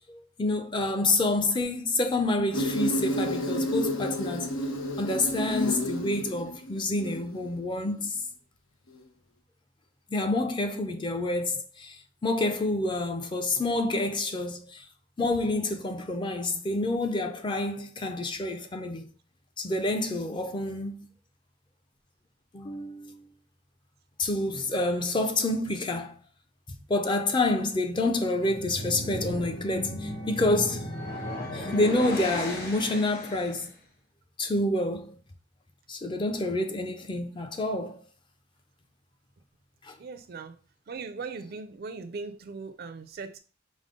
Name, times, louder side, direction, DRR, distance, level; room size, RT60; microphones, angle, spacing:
voice 1, 0.1-4.5 5.0-8.2 10.1-12.0 12.2-14.8 15.2-19.1 19.6-20.9 22.5-23.2 24.2-26.2 26.9-30.9 31.5-33.7 34.4-35.1 35.9-38.0 39.8-39.9, left 2 dB, 25° left, 0.4 m, -28 dB
Insect, 2.5-7.5, equal, 90° left, 0.7 m, -30 dB
sound 1, 28.3-33.7, left 1 dB, 50° left, 1.1 m, -35 dB
voice 2, 40.0-40.6 40.9-43.4, right 4 dB, 50° right, 0.4 m, -39 dB
5.1 x 2.0 x 3.6 m
head